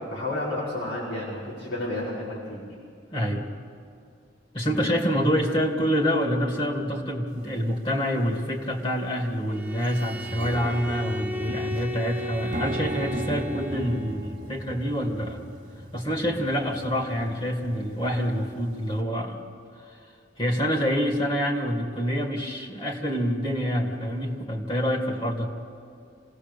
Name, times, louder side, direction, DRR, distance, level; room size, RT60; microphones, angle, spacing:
voice 1, 0.0-2.6 4.6-4.9, left 1 dB, 85° left, -7 dB, 5.3 m, -31 dB
voice 2, 3.1-3.5 4.5-15.4 15.9-19.4 20.4-25.5, equal, 30° left, 2 dB, 2.4 m, -26 dB
sound 1, 7.4-7.5 8.3-8.5 8.9-9.0 9.3-19.0, equal, 45° right, 2.0 m, -38 dB
Bowed string instrument, 9.5-14.2, equal, 10° right, 0.9 m, -35 dB
27.5 x 17.5 x 6.9 m, 2.4 s
head